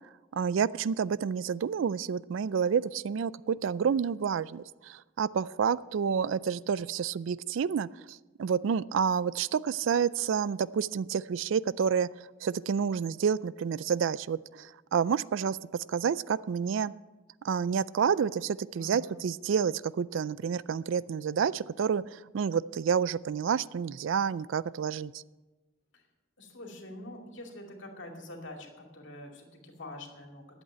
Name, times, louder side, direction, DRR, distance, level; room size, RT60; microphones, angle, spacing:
voice 1, 0.3-12.1 12.4-15.6 15.9-16.9 17.4-25.2, right 7 dB, 65° right, 19 dB, 0.3 m, -29 dB
voice 2, 18.8-19.2 25.9-26.0 26.4-30.6, left 1 dB, 60° left, 2 dB, 2.4 m, -45 dB
11.5 x 8.1 x 8.6 m, 1.2 s
head